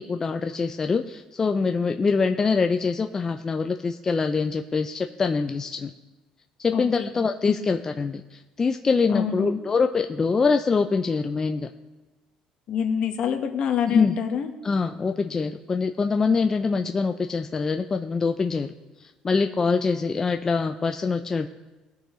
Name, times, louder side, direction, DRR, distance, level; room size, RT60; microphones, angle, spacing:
voice 1, 0.0-5.9 6.6-11.7 13.9-14.2 14.6-18.7 19.2-21.5, left 4 dB, 25° left, 6 dB, 0.4 m, -24 dB
voice 2, 6.7-7.1 7.6-7.7 9.1-9.6 12.7-14.5, left 7 dB, 55° left, 5 dB, 1.3 m, -26 dB
19.5 x 6.6 x 3.1 m, 1.1 s
cardioid pair, 115°, 2 cm